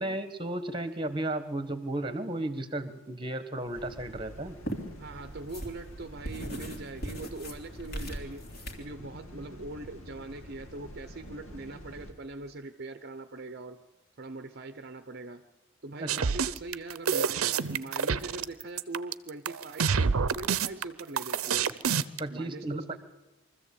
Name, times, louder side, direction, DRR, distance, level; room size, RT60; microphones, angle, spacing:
voice 1, 0.0-4.6 16.0-16.2 22.2-23.0, right 1 dB, 20° right, 11 dB, 1.3 m, -34 dB
sound 1, 3.7-12.1, equal, 75° left, 2.6 m, -48 dB
sound 2, 3.7-8.7, right 1 dB, 45° left, 3.0 m, -39 dB
voice 2, 5.0-8.5 8.8-13.9 14.2-15.5 15.8-21.7 22.3-23.0, right 2 dB, 45° right, 9 dB, 0.7 m, -42 dB
sound 3, 16.1-22.2, right 6 dB, 85° right, 0.7 m, -27 dB
23.5 x 14.0 x 8.5 m, 1.1 s
head